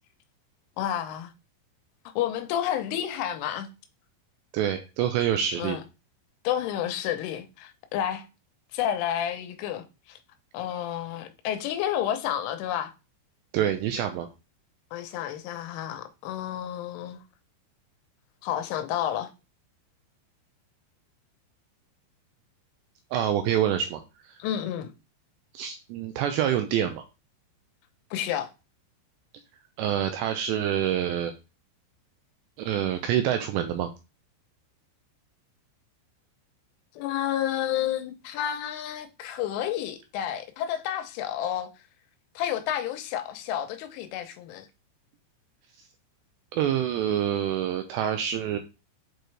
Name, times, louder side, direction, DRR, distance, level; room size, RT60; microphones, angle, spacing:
voice 1, 0.8-1.3 2.2-3.7 5.6-5.8 6.4-8.3 8.7-10.2 10.5-12.9 14.9-17.2 18.4-19.3 24.4-24.9 28.1-28.5 37.0-41.7 42.4-44.7, left 11 dB, 80° left, 3.3 m, -30 dB
voice 2, 4.5-5.8 13.5-14.3 23.1-24.0 25.5-27.0 29.8-31.3 32.6-33.9 46.5-48.6, right 10 dB, 85° right, 2.5 m, -26 dB
7.6 x 4.5 x 3.2 m
omnidirectional pair, 5.7 m